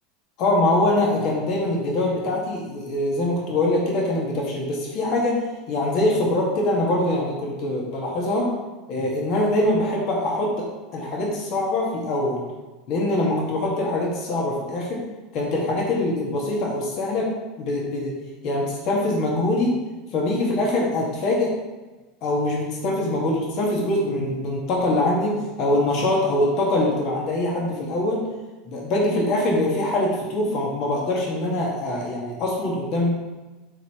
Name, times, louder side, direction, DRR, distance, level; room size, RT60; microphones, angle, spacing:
voice 1, 0.4-5.4 5.7-8.5 8.9-10.7 10.9-12.4 12.9-15.0 15.3-17.3 17.6-18.1 18.4-19.8 20.1-21.5 22.2-28.3 28.6-33.2, left 1 dB, 50° left, -3 dB, 2.2 m, -23 dB
11.5 x 4.7 x 3.4 m, 1.2 s
hypercardioid pair, 80°, 0 cm